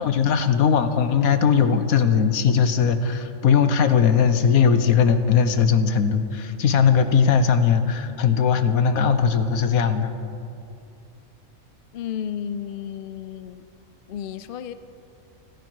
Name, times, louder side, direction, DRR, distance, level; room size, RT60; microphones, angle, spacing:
voice 1, 0.0-10.1, left 6 dB, 80° left, 10 dB, 1.4 m, -19 dB
voice 2, 11.9-13.7 14.1-14.7, left 9 dB, 55° left, 12 dB, 0.6 m, -32 dB
28.0 x 10.0 x 4.7 m, 2.5 s
omnidirectional pair, 1.5 m